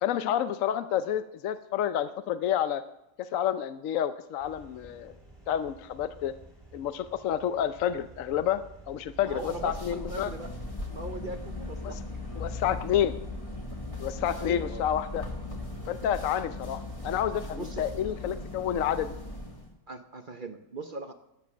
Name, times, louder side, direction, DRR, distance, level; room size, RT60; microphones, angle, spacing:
voice 1, 0.0-2.8 3.2-5.1 5.5-6.3 6.7-10.3 11.8-11.9 12.4-13.2 14.0-15.2 15.9-19.2, left 10 dB, 65° left, 12 dB, 0.8 m, -29 dB
sound 1, 4.4-12.6, right 2 dB, 20° right, 2.8 m, -52 dB
sound 2, 9.2-19.7, left 2 dB, 20° left, 2.1 m, -38 dB
voice 2, 9.2-10.5 10.9-12.0 14.4-14.8 15.5-15.6 17.5-17.9 19.9-21.1, right 2 dB, 45° right, 7 dB, 0.7 m, -39 dB
12.5 x 10.0 x 6.2 m, 0.88 s
omnidirectional pair, 1.8 m